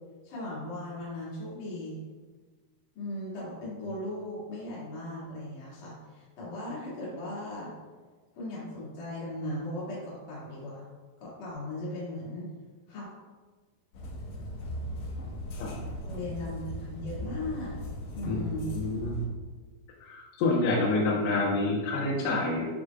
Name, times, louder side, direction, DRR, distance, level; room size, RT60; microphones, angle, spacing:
voice 1, 0.2-2.1 3.0-7.7 8.4-10.9 11.2-12.5 12.9-13.1 16.1-17.8 18.1-18.7, left 1 dB, 50° left, -8 dB, 3.6 m, -37 dB
sound 1, 13.9-19.2, equal, 70° left, 2.1 m, -38 dB
voice 2, 18.2-19.2 20.0-22.7, left 2 dB, 85° left, -4 dB, 3.3 m, -28 dB
14.5 x 5.0 x 2.4 m, 1.4 s
omnidirectional pair, 5.0 m